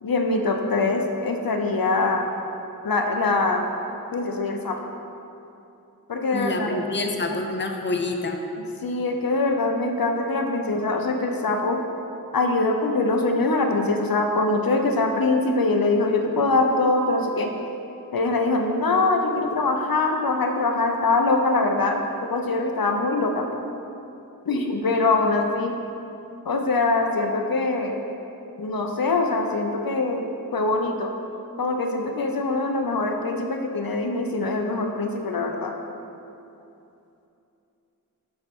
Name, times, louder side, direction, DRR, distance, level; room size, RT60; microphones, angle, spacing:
voice 1, 0.0-2.3 2.8-3.6 4.1-4.8 6.1-6.8 8.8-11.8 12.3-17.5 18.1-22.0 22.3-23.5 24.5-25.8 26.4-28.0 28.6-30.2 30.5-31.1 31.6-35.7, left 3 dB, 75° left, 3 dB, 0.6 m, -23 dB
voice 2, 6.3-8.4, left 2 dB, 30° left, 4 dB, 0.6 m, -27 dB
11.5 x 4.3 x 3.6 m, 2.8 s
wide cardioid pair, 50°, 35 cm